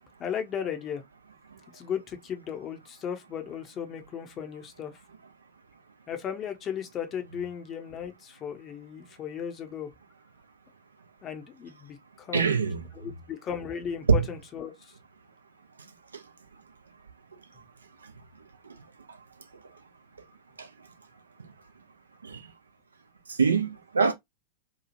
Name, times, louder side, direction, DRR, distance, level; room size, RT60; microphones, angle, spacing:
voice 1, 0.2-1.0 1.7-4.9 6.1-9.9 11.2-12.6 13.0-14.7, left 8 dB, 30° left, 0.7 m, -36 dB
voice 2, 12.3-12.8 14.1-14.3 16.1-16.2 20.6-20.7 22.2-22.4 23.3-24.1, right 5 dB, 75° right, 0.6 m, -24 dB
2.9 x 2.3 x 2.6 m
figure-of-eight pair, 90°, 0 cm